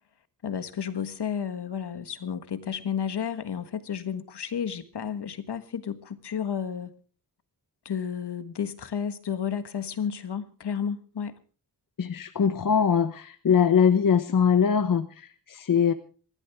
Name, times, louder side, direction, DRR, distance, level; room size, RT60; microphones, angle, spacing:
voice 1, 0.4-6.9 7.8-11.3, left 7 dB, 70° left, 1.6 m, -32 dB
voice 2, 12.0-15.9, left 7 dB, 50° left, 1.0 m, -22 dB
26.5 x 12.5 x 3.5 m
wide cardioid pair, 100°, 41 cm